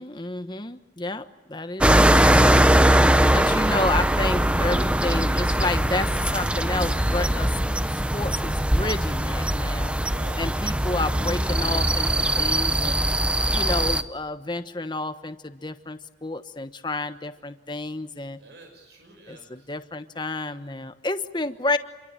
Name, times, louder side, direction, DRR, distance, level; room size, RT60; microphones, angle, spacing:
voice 1, 0.0-2.5 3.3-7.6 7.9-10.0 10.4-13.0 13.5-18.4 19.3-21.8, left 2 dB, 25° left, 10 dB, 1.2 m, -30 dB
sound 1, 1.8-14.0, right 1 dB, 5° right, 0.8 m, -21 dB
voice 2, 10.0-10.6 18.3-19.7, right 1 dB, 80° right, 3 dB, 5.8 m, -48 dB
28.0 x 23.5 x 9.0 m, 1.1 s
head